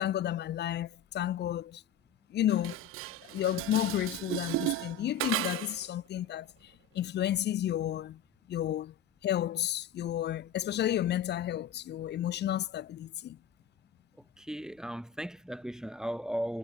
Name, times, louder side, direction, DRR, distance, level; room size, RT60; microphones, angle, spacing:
voice 1, 0.0-1.8 2.3-2.8 3.3-8.2 8.5-8.9 9.2-13.4, left 12 dB, 55° left, 6.8 m, -31 dB
Dishes pots and pans, 2.5-5.9, right 19 dB, 90° right, 1.7 m, -35 dB
voice 2, 14.4-16.6, equal, 5° right, 3.0 m, -36 dB
cardioid pair, 160°, 21 cm